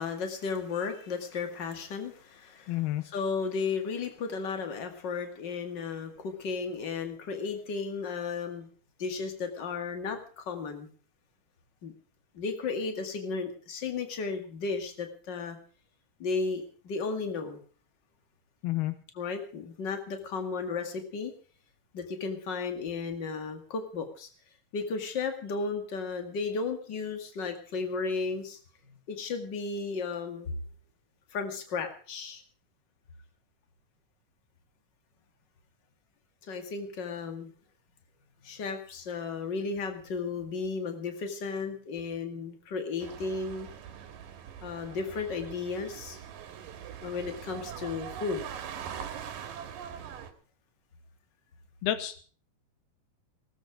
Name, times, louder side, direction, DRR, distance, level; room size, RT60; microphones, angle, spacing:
voice 1, 0.0-8.7 9.0-10.9 11.8-11.9 12.3-15.6 16.2-17.6 19.1-21.3 21.9-24.3 24.7-28.6 28.9-30.5 31.3-32.4 36.5-37.5 38.4-43.7 44.6-46.2 47.0-48.5, left 4 dB, 35° left, 6 dB, 2.1 m, -34 dB
voice 2, 2.7-3.0 18.6-18.9 51.8-52.2, left 13 dB, 85° left, 11 dB, 3.0 m, -29 dB
sound 1, 43.0-50.3, right 8 dB, 65° right, 3.2 m, -42 dB
18.5 x 13.5 x 4.9 m, 0.42 s
omnidirectional pair, 4.4 m